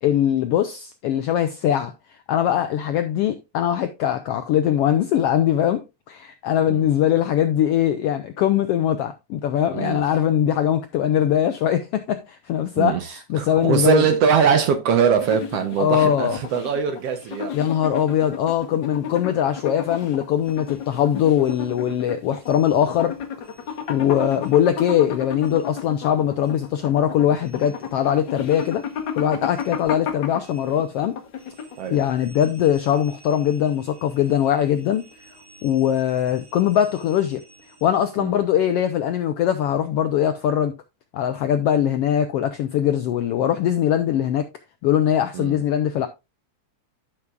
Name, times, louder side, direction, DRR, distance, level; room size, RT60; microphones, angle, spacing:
voice 1, 0.0-1.9 2.3-14.0 15.8-16.4 17.5-23.2 23.9-28.8 29.1-31.1 31.9-35.0 35.6-37.4 37.8-40.7 41.1-44.5 44.8-46.1, left 10 dB, 80° left, 1.4 m, -21 dB
voice 2, 12.8-17.6 31.8-32.0 38.2-38.3 45.3-45.6, right 7 dB, 65° right, 1.7 m, -22 dB
sound 1, 15.1-32.0, left 7 dB, 55° left, 1.4 m, -33 dB
sound 2, 20.4-23.1 23.4-26.1 26.4-38.2, right 3 dB, 80° right, 6.6 m, -53 dB
13.0 x 6.0 x 2.4 m
omnidirectional pair, 3.4 m